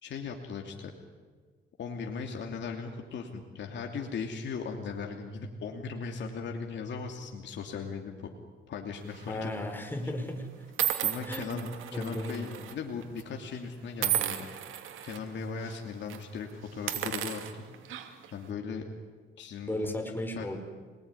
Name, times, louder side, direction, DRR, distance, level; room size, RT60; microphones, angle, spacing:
voice 1, 0.0-0.9 1.8-8.3 8.7-9.5 10.0-10.1 11.0-14.5 15.0-17.7 18.3-18.8 19.4-19.9 20.3-20.6, left 5 dB, 65° left, 2 dB, 2.8 m, -38 dB
sound 1, 9.1-9.4 10.2-10.3 10.8-12.7 13.0-13.2 14.0-15.2 15.6-15.8 16.1-16.2 16.7-18.3, right 12 dB, 85° right, 2.6 m, -33 dB
voice 2, 9.3-10.5 11.3-11.5 11.9-12.6 19.7-20.6, left 1 dB, 10° left, 5 dB, 5.1 m, -35 dB
27.0 x 20.5 x 9.9 m, 1.5 s
cardioid pair, 90°, 20 cm